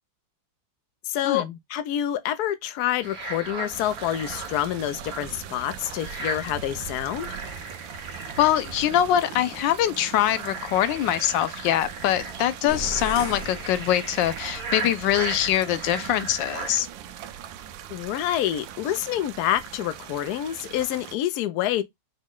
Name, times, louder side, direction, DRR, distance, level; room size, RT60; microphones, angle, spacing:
voice 1, 1.0-7.3 17.9-21.8, left 12 dB, 70° left, 1.1 m, -27 dB
sound 1, 3.0-16.8, right 3 dB, 55° right, 1.7 m, -38 dB
sound 2, 3.7-21.2, right 9 dB, 85° right, 1.3 m, -41 dB
voice 2, 8.4-16.9, left 11 dB, 90° left, 1.3 m, -23 dB
sound 3, 12.7-14.5, equal, 35° left, 0.8 m, -36 dB
5.2 x 2.2 x 3.6 m
omnidirectional pair, 1.9 m